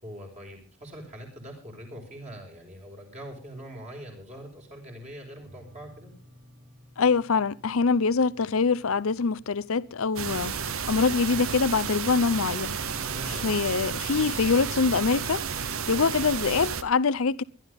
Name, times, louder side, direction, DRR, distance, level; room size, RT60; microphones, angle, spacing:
voice 1, 0.0-6.1 13.1-13.5, equal, 30° right, 5.1 m, -43 dB
sound 1, 5.4-14.4, equal, 50° right, 6.2 m, -57 dB
voice 2, 7.0-10.6 10.9-12.8 13.4-15.4 15.9-17.4, left 4 dB, 70° left, 0.6 m, -24 dB
sound 2, 10.2-16.8, right 6 dB, 70° right, 1.0 m, -32 dB
23.5 x 11.5 x 3.5 m
head